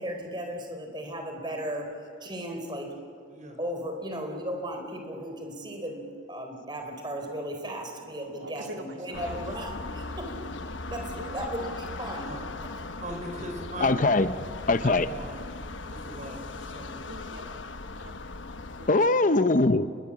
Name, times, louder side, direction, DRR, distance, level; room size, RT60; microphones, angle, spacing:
voice 1, 0.0-1.9 2.2-2.9 3.6-10.3 10.9-11.0 11.3-12.3, equal, 25° right, 4 dB, 4.1 m, -36 dB
voice 2, 8.4-9.5 10.9-11.7 12.8-13.0 17.1-17.5 18.0-19.2, right 1 dB, 75° right, 3 dB, 2.7 m, -45 dB
sound 1, 9.1-18.9, left 3 dB, 70° left, 1.1 m, -38 dB
voice 3, 12.2-12.5 13.0-14.0 14.8-15.5 15.9-17.0, equal, 40° right, 3 dB, 5.0 m, -40 dB
voice 4, 13.8-14.3 14.7-15.1 18.9-19.9, left 2 dB, 40° left, 12 dB, 0.7 m, -21 dB
29.5 x 21.0 x 7.4 m, 2.4 s
head